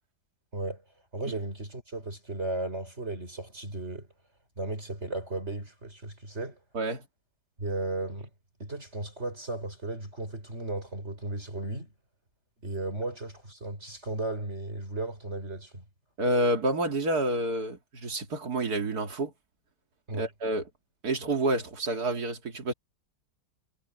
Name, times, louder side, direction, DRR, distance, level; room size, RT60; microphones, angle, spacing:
voice 1, 1.1-4.1 4.6-6.6 7.6-8.3 8.6-11.9 12.6-15.8 20.1-20.3, right 2 dB, 40° right, 5.5 m, -35 dB
voice 2, 6.7-7.0 16.2-19.3 20.1-20.6 21.0-22.7, right 1 dB, 65° right, 2.8 m, -28 dB
omnidirectional pair, 1.8 m